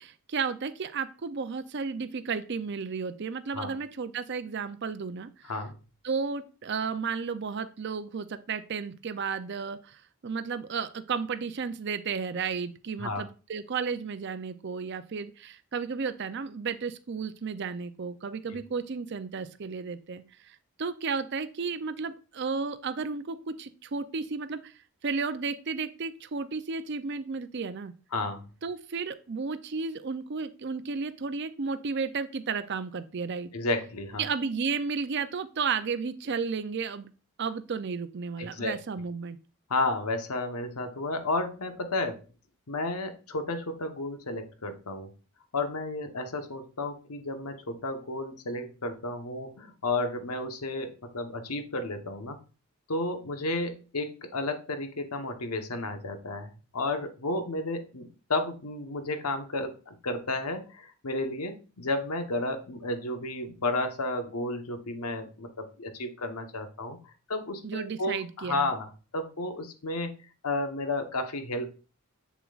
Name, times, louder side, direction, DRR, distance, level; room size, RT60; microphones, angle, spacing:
voice 1, 0.0-5.3 6.0-24.7 25.0-27.9 28.6-33.5 34.2-37.1 37.4-39.4 67.6-68.7, right 5 dB, 50° right, 11 dB, 0.5 m, -33 dB
voice 2, 28.1-28.4 33.5-34.2 38.4-38.7 39.7-42.2 42.7-45.1 45.5-52.4 52.9-67.0 67.3-70.1 70.4-71.8, left 2 dB, 85° left, 7 dB, 1.1 m, -32 dB
7.4 x 6.9 x 2.4 m, 0.34 s
head